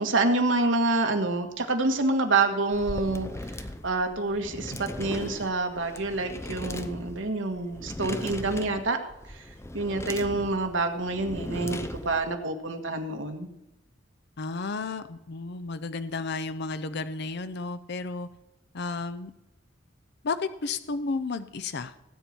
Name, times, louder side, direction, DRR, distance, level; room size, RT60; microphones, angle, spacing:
voice 1, 0.0-9.0 9.3-9.5 9.7-13.5, right 3 dB, 75° right, 5 dB, 1.7 m, -27 dB
sound 1, 2.7-12.3, left 1 dB, 15° left, 0.7 m, -38 dB
voice 2, 14.4-18.3 18.7-19.3 20.2-21.9, left 4 dB, 60° left, 12 dB, 0.6 m, -32 dB
18.0 x 8.7 x 4.5 m, 0.89 s
head